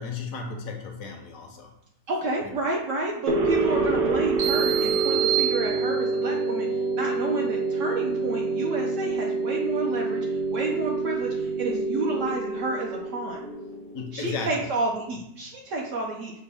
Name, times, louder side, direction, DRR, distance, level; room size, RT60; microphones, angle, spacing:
voice 1, 0.0-1.7 2.4-2.6 13.9-14.7, left 4 dB, 70° left, 4 dB, 1.0 m, -34 dB
voice 2, 2.1-6.7 6.9-13.4 14.1-16.3, right 3 dB, 65° right, -1 dB, 0.9 m, -30 dB
sound 1, 3.3-14.1, right 3 dB, 90° right, 1.2 m, -27 dB
sound 2, 4.4-6.3, right 11 dB, 30° right, 0.7 m, -28 dB
6.0 x 2.2 x 3.4 m, 0.77 s
omnidirectional pair, 1.6 m